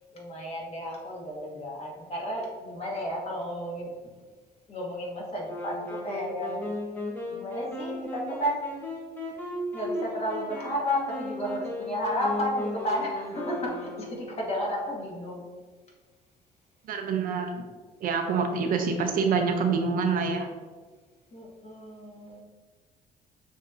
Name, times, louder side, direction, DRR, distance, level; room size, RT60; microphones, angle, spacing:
voice 1, 0.0-4.1 4.7-6.7 7.3-8.7 9.7-15.5 21.3-22.4, equal, 40° left, -3 dB, 1.4 m, -32 dB
Wind instrument woodwind instrument, 5.4-14.5, left 1 dB, 10° left, 0.9 m, -36 dB
voice 2, 16.9-17.7 18.0-20.5, right 5 dB, 55° right, 4 dB, 0.5 m, -26 dB
6.5 x 2.7 x 2.6 m, 1.4 s
cardioid pair, 110°, 17 cm